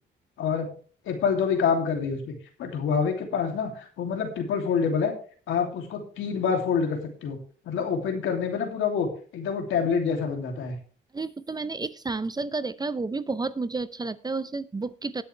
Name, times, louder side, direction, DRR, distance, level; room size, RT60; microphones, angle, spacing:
voice 1, 0.4-0.7 1.1-2.3 2.6-5.1 5.5-7.4 7.6-9.1 9.3-10.7, left 6 dB, 80° left, 3 dB, 2.8 m, -26 dB
voice 2, 11.1-15.2, right 3 dB, 20° right, 14 dB, 0.7 m, -31 dB
19.5 x 6.9 x 3.3 m, 0.42 s
cardioid pair, 90°, 20 cm